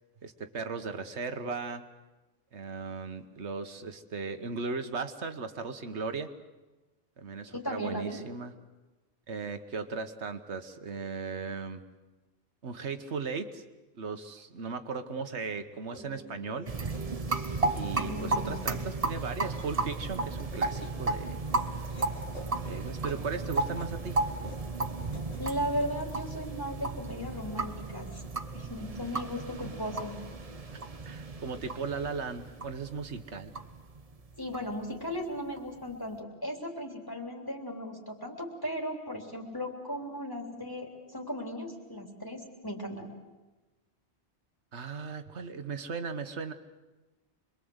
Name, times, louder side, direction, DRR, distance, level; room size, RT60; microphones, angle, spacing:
voice 1, 0.2-1.8 2.5-6.3 7.2-8.5 9.3-11.8 12.6-13.6 13.9-16.7 17.7-21.4 22.6-24.2 29.6-30.0 31.0-33.5 44.7-46.5, right 4 dB, 80° right, 8 dB, 1.5 m, -37 dB
voice 2, 7.5-8.2 18.0-18.7 25.4-28.2 28.5-30.2 34.4-43.1, equal, 20° left, 1 dB, 3.5 m, -36 dB
sound 1, 15.1-25.9, right 1 dB, 90° left, 4.5 m, -48 dB
sound 2, 16.7-35.9, right 3 dB, 35° right, 1.1 m, -34 dB
26.0 x 22.5 x 8.0 m, 1.2 s
omnidirectional pair, 1.1 m